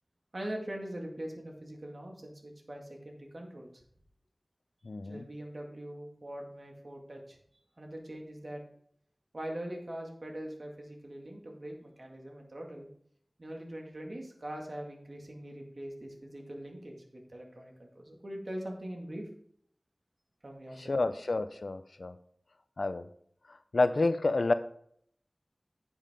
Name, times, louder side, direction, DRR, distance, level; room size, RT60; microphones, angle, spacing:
voice 1, 0.3-3.8 5.0-7.4 7.8-8.6 9.3-12.9 13.4-19.3 20.4-21.0, right 1 dB, 60° right, 1 dB, 2.1 m, -42 dB
voice 2, 4.8-5.3 20.9-22.1 22.8-23.1 23.7-24.5, left 2 dB, 80° left, 11 dB, 0.6 m, -29 dB
10.0 x 7.3 x 3.7 m, 0.65 s
wide cardioid pair, 55°, 0 cm